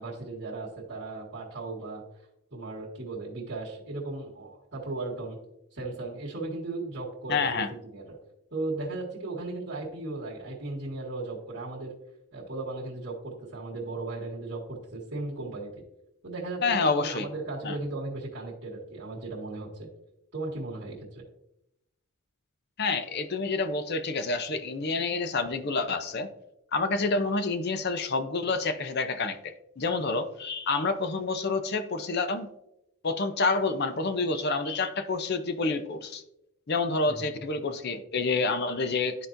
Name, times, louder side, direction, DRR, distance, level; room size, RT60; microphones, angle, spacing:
voice 1, 0.0-2.0 2.5-5.4 5.7-8.2 8.5-11.9 12.3-15.8 16.2-19.9 20.3-21.2 37.1-37.2, right 2 dB, 50° right, -7 dB, 1.8 m, -36 dB
voice 2, 7.3-7.7 16.6-17.3 17.6-17.8 22.8-26.3 26.7-32.5 33.0-36.2 36.7-39.3, left 3 dB, 45° left, 9 dB, 0.6 m, -28 dB
12.5 x 4.2 x 2.6 m, 0.84 s
head